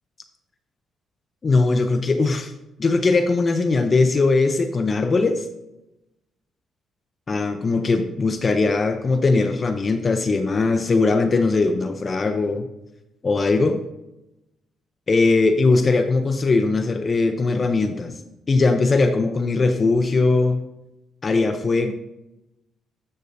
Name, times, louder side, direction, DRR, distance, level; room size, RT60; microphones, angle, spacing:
voice 1, 1.4-2.5 2.8-5.5 7.3-12.7 13.2-13.8 15.1-18.2 18.5-20.6 21.2-21.9, left 3 dB, 35° left, 7 dB, 0.5 m, -20 dB
9.2 x 6.4 x 2.6 m, 0.92 s
cardioid pair, 90°, 0 cm